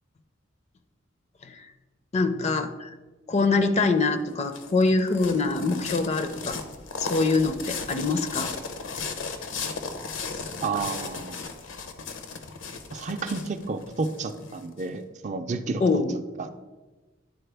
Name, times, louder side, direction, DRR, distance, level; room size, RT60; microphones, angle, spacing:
voice 1, 2.1-2.9 3.3-6.6 7.0-8.5 15.8-16.2, left 3 dB, 35° left, 9 dB, 0.4 m, -24 dB
sound 1, 4.0-14.8, left 4 dB, 75° left, 0.7 m, -36 dB
voice 2, 10.6-11.5 12.9-15.8 16.4-16.6, right 3 dB, 40° right, 8 dB, 0.4 m, -31 dB
10.5 x 4.2 x 3.4 m, 1.2 s
head